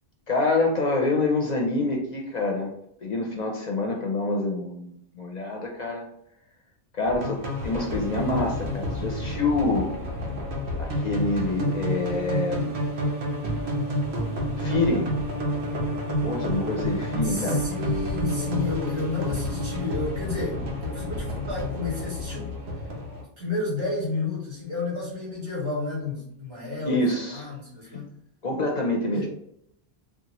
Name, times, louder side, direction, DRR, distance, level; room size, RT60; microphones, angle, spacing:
voice 1, 0.3-2.7 3.0-6.0 6.9-9.9 10.8-12.8 14.6-15.1 16.2-17.6 26.8-27.5 27.9-28.0 28.4-29.3, left 2 dB, 50° left, 1 dB, 0.6 m, -26 dB
sound 1, 7.1-23.2, equal, 90° right, 1.1 m, -29 dB
voice 2, 17.2-22.6 23.4-28.1 29.1-29.3, left 3 dB, 70° right, -5 dB, 1.8 m, -31 dB
4.0 x 2.3 x 2.9 m, 0.73 s
omnidirectional pair, 1.1 m